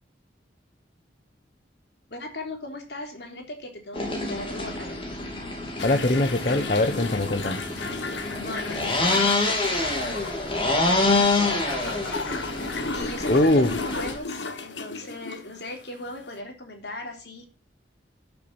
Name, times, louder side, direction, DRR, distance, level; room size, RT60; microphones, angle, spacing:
voice 1, 2.1-5.0 8.1-12.2 12.9-17.5, left 2 dB, 65° left, 3 dB, 3.5 m, -38 dB
sound 1, 3.9-14.2, left 2 dB, 30° left, 3.0 m, -27 dB
sound 2, 5.8-16.4, left 3 dB, 80° left, 1.5 m, -35 dB
voice 2, 5.8-7.6 13.3-13.7, left 1 dB, 45° left, 8 dB, 0.9 m, -22 dB
11.5 x 7.1 x 6.1 m, 0.32 s
head